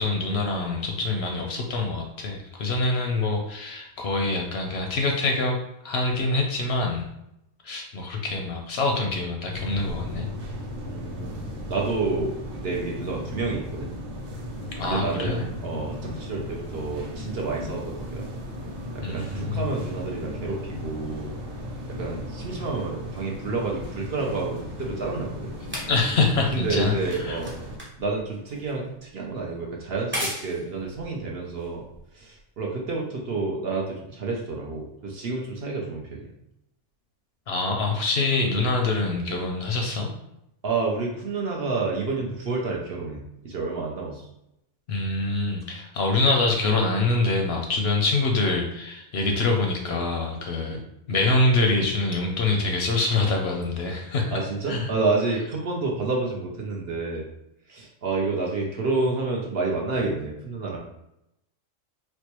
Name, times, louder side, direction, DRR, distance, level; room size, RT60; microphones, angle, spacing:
voice 1, 0.0-5.6 5.8-7.1 7.6-10.3 14.8-15.4 19.0-19.6 25.9-26.9 27.2-27.4 37.5-40.1 44.9-50.8 51.1-54.4 54.7-54.9, left 3 dB, 65° left, 2 dB, 0.7 m, -25 dB
sound 1, 9.5-27.8, left 1 dB, 85° right, 1.2 m, -36 dB
voice 2, 10.8-13.9 14.8-18.3 18.9-21.3 21.9-25.5 26.5-27.5 28.0-31.8 32.1-36.2 40.6-44.2 50.6-50.8 54.3-57.3 57.7-60.8, right 3 dB, 60° right, -1 dB, 0.7 m, -29 dB
sound 2, 23.8-32.4 33.2-33.3, equal, 15° right, 0.6 m, -39 dB
4.3 x 2.1 x 2.9 m, 0.84 s
omnidirectional pair, 1.3 m